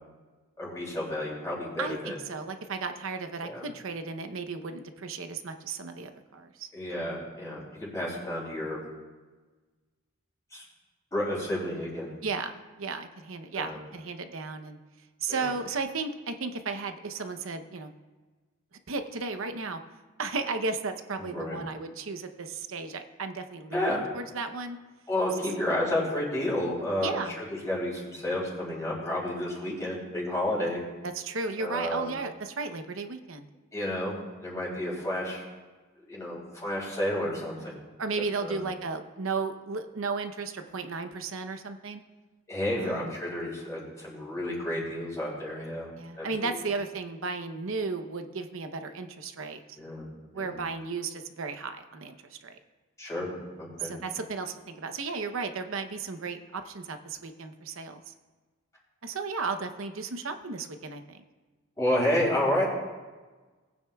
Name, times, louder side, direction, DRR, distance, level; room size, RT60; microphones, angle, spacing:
voice 1, 0.6-2.2 3.4-3.7 6.7-8.8 10.5-10.6 11.1-12.1 13.5-13.8 15.3-15.5 21.2-21.6 23.7-24.0 25.1-30.8 31.6-32.1 33.7-34.1 34.4-35.4 36.1-37.8 38.4-38.6 42.5-45.9 46.2-46.5 49.8-50.1 50.3-50.6 53.0-53.3 53.6-53.9 61.8-62.7, left 1 dB, 15° left, -6 dB, 3.0 m, -31 dB
voice 2, 1.8-6.7 12.2-14.8 15.2-17.9 18.9-19.8 20.2-24.8 27.0-27.3 29.4-29.6 31.1-33.5 37.6-42.0 42.8-43.1 45.9-49.8 50.3-52.6 53.8-58.1 59.0-61.2, right 4 dB, 65° right, 8 dB, 0.8 m, -34 dB
19.0 x 9.2 x 2.3 m, 1.3 s
head